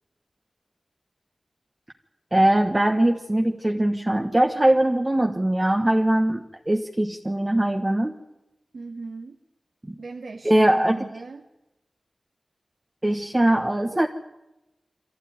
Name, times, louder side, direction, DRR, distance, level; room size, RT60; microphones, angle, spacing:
voice 1, 2.3-8.1 9.9-10.0 10.4-11.0 13.0-14.1, right 1 dB, 20° right, 3 dB, 1.2 m, -21 dB
voice 2, 8.7-9.4 10.0-11.5 13.4-14.1, right 3 dB, 85° right, 3 dB, 1.5 m, -39 dB
24.0 x 15.0 x 9.5 m, 0.95 s
wide cardioid pair, 85°, 0 cm